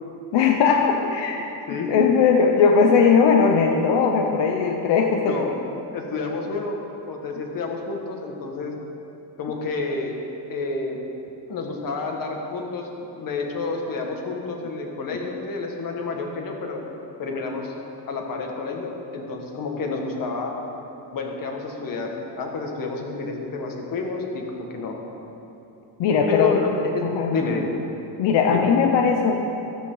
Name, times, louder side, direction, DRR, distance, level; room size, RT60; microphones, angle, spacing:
voice 1, 0.3-5.5 26.0-26.6 27.0-27.4 28.2-29.3, left 5 dB, 80° left, 2 dB, 1.0 m, -19 dB
voice 2, 5.3-5.6 5.9-6.8 7.1-8.7 9.4-10.2 10.5-11.0 11.5-16.9 17.2-17.7 18.1-20.5 21.1-25.0 26.3-27.7 28.5-28.7, left 3 dB, 50° left, 1 dB, 1.9 m, -29 dB
13.5 x 13.5 x 4.0 m, 2.9 s
cardioid pair, 150°, 42 cm